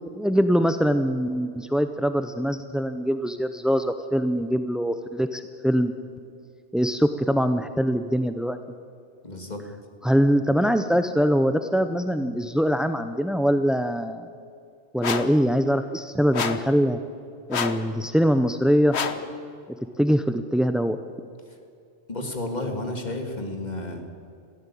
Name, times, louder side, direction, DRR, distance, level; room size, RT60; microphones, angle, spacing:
voice 1, 0.1-5.9 6.7-8.6 10.0-14.3 14.9-17.0 17.5-18.9 20.0-21.0, equal, ahead, 9 dB, 0.4 m, -23 dB
voice 2, 9.2-9.7 22.1-24.0, left 2 dB, 40° left, 4 dB, 2.6 m, -31 dB
sound 1, 15.0-15.4 16.3-16.7 17.5-17.9 18.9-19.3, left 6 dB, 70° left, 1.3 m, -28 dB
20.5 x 15.0 x 8.5 m, 2.4 s
omnidirectional pair, 1.2 m